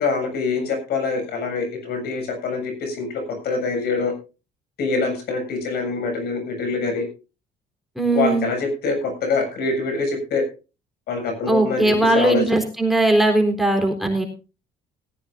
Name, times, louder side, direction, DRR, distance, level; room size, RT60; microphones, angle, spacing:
voice 1, 0.0-4.1 4.8-7.0 8.1-10.4 11.1-12.4, left 4 dB, 70° left, 6 dB, 7.1 m, -24 dB
voice 2, 8.0-8.5 11.5-14.2, right 2 dB, ahead, 5 dB, 3.9 m, -19 dB
19.0 x 14.5 x 2.7 m, 0.32 s
cardioid pair, 110°, 17 cm